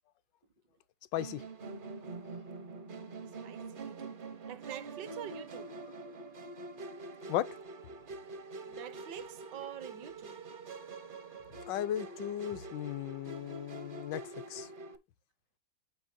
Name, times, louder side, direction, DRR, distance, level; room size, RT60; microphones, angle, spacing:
voice 1, 1.1-1.4 2.2-2.4 7.3-7.5 11.7-14.2 14.5-14.7, left 12 dB, 80° left, 1.3 m, -36 dB
Musical instrument, 1.2-15.0, right 3 dB, 50° right, 0.6 m, -45 dB
voice 2, 3.4-4.2 4.5-5.7 8.7-10.4, right 9 dB, 75° right, 1.4 m, -46 dB
8.5 x 6.3 x 2.6 m
omnidirectional pair, 1.9 m